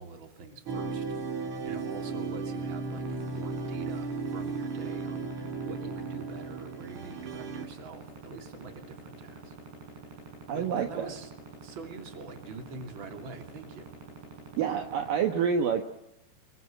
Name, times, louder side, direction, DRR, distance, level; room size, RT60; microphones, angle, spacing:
voice 1, 0.0-9.6 9.9-10.0 10.5-11.3 11.6-13.9, right 4 dB, 35° right, 6 dB, 3.0 m, -45 dB
sound 1, 0.7-7.7, right 4 dB, 50° right, 3.4 m, -35 dB
sound 2, 2.9-15.2, right 3 dB, 85° right, 10.0 m, -46 dB
voice 2, 10.5-11.1 14.6-15.8, right 7 dB, 65° right, 5 dB, 2.7 m, -28 dB
27.0 x 22.0 x 7.6 m, 0.82 s
omnidirectional pair, 4.7 m